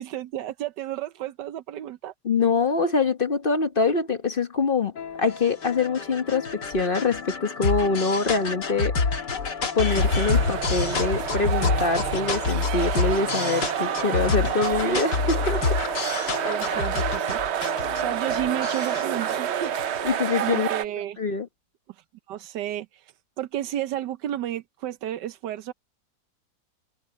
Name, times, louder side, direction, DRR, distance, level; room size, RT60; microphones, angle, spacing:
voice 1, 0.0-2.1 16.5-17.4 18.0-20.1 20.4-21.2 22.3-22.9 23.4-25.7, right 12 dB, 90° right, 1.4 m, -32 dB
voice 2, 2.2-4.9 5.2-9.0 9.7-15.6 20.0-20.7 21.2-21.5, left 4 dB, 35° left, 1.2 m, -24 dB
sound 1, 4.9-20.5, left 4 dB, 90° left, 2.7 m, -28 dB
sound 2, 9.9-20.8, right 10 dB, 60° right, 0.7 m, -29 dB
omnidirectional pair, 1.8 m